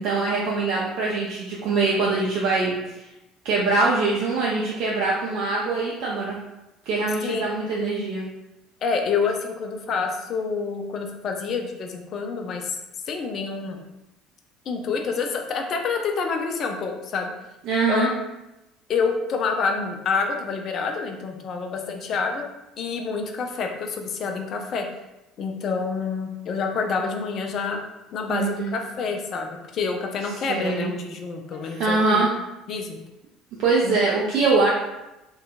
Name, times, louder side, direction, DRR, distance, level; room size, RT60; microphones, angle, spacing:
voice 1, 0.0-3.0 3.4-6.4 6.9-8.3 17.7-18.1 28.3-28.8 30.5-30.9 31.6-32.3 33.6-34.7, right 3 dB, 55° right, -4 dB, 0.4 m, -23 dB
voice 2, 8.8-12.8 13.1-13.8 14.7-17.3 17.9-18.1 18.9-22.5 22.8-24.9 25.4-27.8 28.1-32.3 32.7-33.0 33.8-34.0, left 5 dB, 45° left, 3 dB, 0.3 m, -27 dB
2.7 x 2.2 x 2.5 m, 0.96 s
figure-of-eight pair, 60°, 0 cm